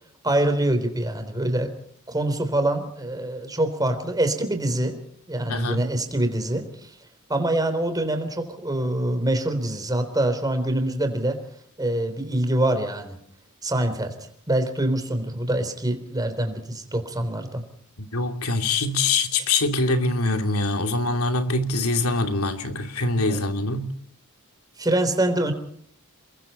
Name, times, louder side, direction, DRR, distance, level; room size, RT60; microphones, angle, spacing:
voice 1, 0.2-1.7 2.1-5.0 5.3-6.9 7.3-11.4 11.8-13.2 13.6-14.1 14.5-17.6 23.3-23.4 24.8-25.5, right 1 dB, 20° right, 3.6 m, -25 dB
voice 2, 5.5-5.9 18.0-23.9, left 2 dB, 85° left, 2.7 m, -24 dB
29.0 x 22.5 x 4.3 m
head